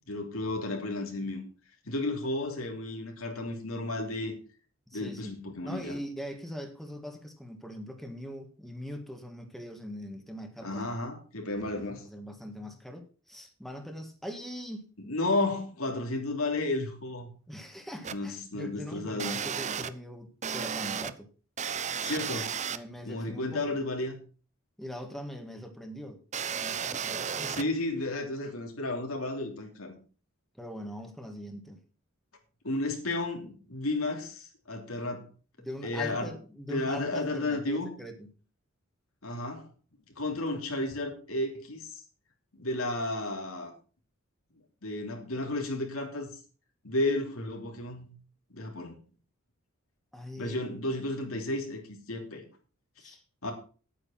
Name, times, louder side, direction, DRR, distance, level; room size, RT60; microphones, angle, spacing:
voice 1, 0.1-1.4 1.8-4.3 4.9-6.0 10.6-12.0 15.0-17.3 18.1-19.4 22.0-22.5 23.1-24.2 27.5-30.0 32.6-35.3 35.8-36.3 36.7-37.9 39.2-39.7 40.2-42.0 42.6-43.7 44.8-46.3 46.8-48.1 48.5-48.9 50.4-52.4 53.0-53.1 53.4-53.5, left 2 dB, 90° left, 3.1 m, -32 dB
voice 2, 4.9-5.3 5.6-10.9 11.4-15.0 17.5-21.3 22.7-23.8 24.8-26.2 26.5-27.7 30.6-31.8 35.6-38.3 50.1-50.7 53.0-53.2, equal, ahead, 1.7 m, -42 dB
sound 1, 18.0-18.1 19.2-19.9 20.4-21.1 21.6-22.8 26.3-27.6, right 7 dB, 35° right, 0.6 m, -33 dB
9.7 x 9.2 x 5.8 m
head